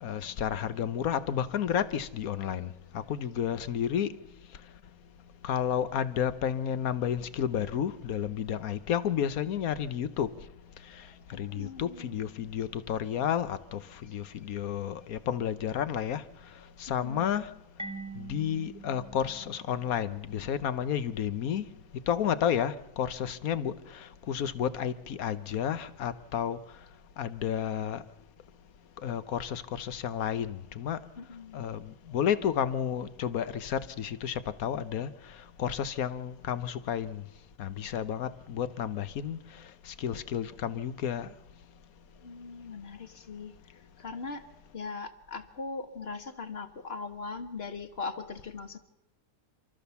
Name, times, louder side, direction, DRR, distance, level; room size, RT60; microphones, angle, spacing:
voice 1, 0.0-2.7 2.9-4.1 5.4-10.3 11.4-16.2 16.8-17.5 18.1-21.6 22.1-26.6 27.2-28.0 29.0-31.0 31.5-35.1 35.6-37.2 37.6-39.4 39.8-41.3, left 9 dB, 70° left, 1.4 m, -31 dB
voice 2, 11.0-12.2 14.0-14.1 14.8-15.1 16.5-17.3 31.2-31.7 42.2-48.8, left 4 dB, 45° left, 1.6 m, -41 dB
Marimba xylophone, 17.8-20.4, right 3 dB, 5° right, 1.4 m, -44 dB
28.0 x 13.5 x 7.0 m
omnidirectional pair, 1.6 m